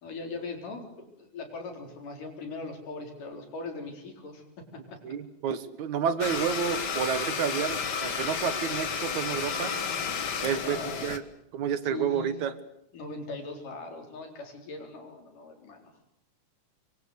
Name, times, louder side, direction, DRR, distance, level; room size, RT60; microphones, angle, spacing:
voice 1, 0.0-4.4 4.7-5.0 10.6-11.2 11.8-12.4 12.9-15.9, left 3 dB, 85° left, 4 dB, 5.8 m, -40 dB
voice 2, 5.0-9.7 10.4-11.2 11.5-12.5, right 7 dB, 70° right, 13 dB, 2.6 m, -30 dB
Domestic sounds home sounds, 6.2-11.2, left 6 dB, 45° left, 1.5 m, -32 dB
25.5 x 23.5 x 8.2 m, 0.76 s
omnidirectional pair, 3.6 m